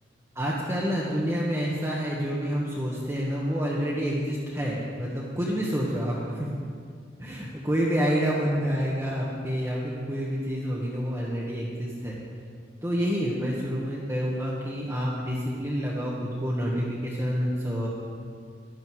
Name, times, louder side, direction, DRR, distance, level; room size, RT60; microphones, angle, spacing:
voice 1, 0.3-6.5 7.2-12.2 12.8-17.9, equal, 15° right, -5 dB, 1.2 m, -28 dB
11.5 x 11.5 x 4.7 m, 2.2 s
head